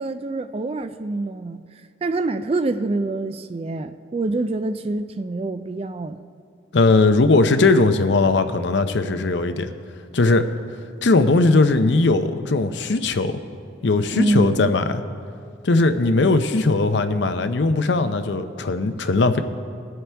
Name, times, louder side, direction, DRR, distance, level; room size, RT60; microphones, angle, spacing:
voice 1, 0.0-1.6 2.0-6.2 14.1-14.7, right 2 dB, 30° right, 0.3 m, -25 dB
voice 2, 6.7-9.7 10.1-10.5 11.0-13.4 13.8-15.0 15.6-19.4, left 3 dB, 70° left, 0.6 m, -19 dB
21.0 x 7.7 x 3.4 m
head